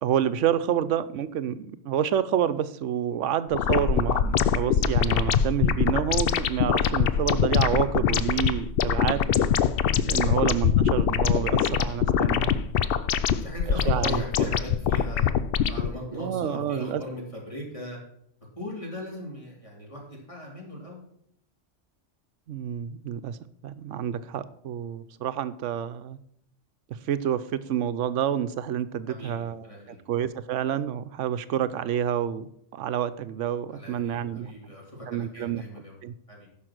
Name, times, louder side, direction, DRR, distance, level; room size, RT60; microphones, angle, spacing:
voice 1, 0.0-9.2 10.1-12.6 13.9-14.5 16.1-17.0 22.5-23.4 23.6-26.2 27.1-29.6 30.1-34.5 35.1-35.6 36.0-36.1, right 9 dB, 75° right, 13 dB, 1.0 m, -28 dB
sound 1, 3.5-15.9, left 8 dB, 60° left, 0.7 m, -24 dB
voice 2, 13.0-15.3 15.7-18.0 18.6-21.0 29.1-30.1 33.7-35.9 36.3-36.5, left 1 dB, 25° left, -3 dB, 3.3 m, -39 dB
11.0 x 5.9 x 6.0 m, 0.72 s
omnidirectional pair, 1.3 m